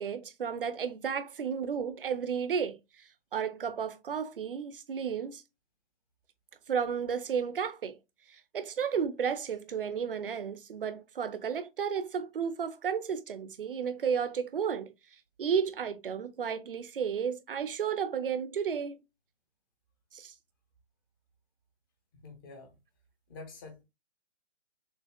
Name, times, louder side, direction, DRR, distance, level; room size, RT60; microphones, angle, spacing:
voice 1, 0.0-5.4 6.7-8.0 8.3-14.9 15.4-19.0 20.1-20.3, right 7 dB, 50° right, 0.7 m, -33 dB
voice 2, 22.1-22.8 23.3-23.8, left 3 dB, 20° left, 0.8 m, -47 dB
6.5 x 2.7 x 2.3 m
figure-of-eight pair, 145°, 36 cm